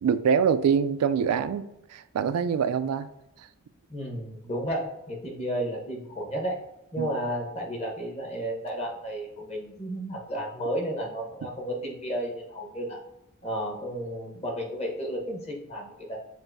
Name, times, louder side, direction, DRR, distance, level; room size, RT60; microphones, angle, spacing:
voice 1, 0.0-3.1 7.0-7.1, right 7 dB, 90° right, 13 dB, 0.3 m, -25 dB
voice 2, 3.9-6.6 6.9-13.0 13.4-16.2, equal, 30° left, -1 dB, 1.0 m, -32 dB
7.2 x 2.6 x 2.6 m, 0.87 s
head